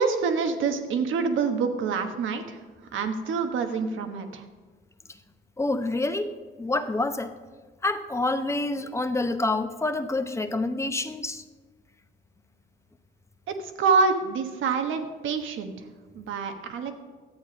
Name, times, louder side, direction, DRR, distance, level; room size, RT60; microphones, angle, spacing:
voice 1, 0.0-2.6 2.9-4.4 13.5-15.9 16.1-16.9, right 5 dB, 80° right, 6 dB, 1.2 m, -26 dB
voice 2, 5.6-6.3 6.6-7.3 7.8-11.4, left 2 dB, 15° left, 8 dB, 0.8 m, -27 dB
12.0 x 8.3 x 5.2 m, 1.4 s
cardioid pair, 90°, 20 cm